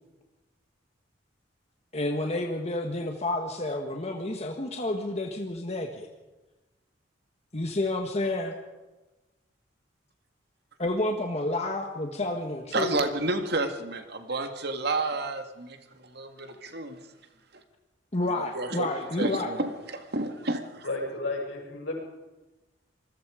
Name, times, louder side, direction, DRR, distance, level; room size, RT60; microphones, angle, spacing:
voice 1, 1.9-6.1 7.5-8.5 10.8-13.0 18.1-19.5, left 2 dB, 35° left, 3 dB, 1.6 m, -30 dB
voice 2, 12.7-17.0 18.2-18.9 19.2-20.9, right 2 dB, 60° right, 7 dB, 2.0 m, -31 dB
voice 3, 20.8-22.0, left 2 dB, 80° left, 0 dB, 7.0 m, -32 dB
26.5 x 20.5 x 5.1 m, 1.1 s
head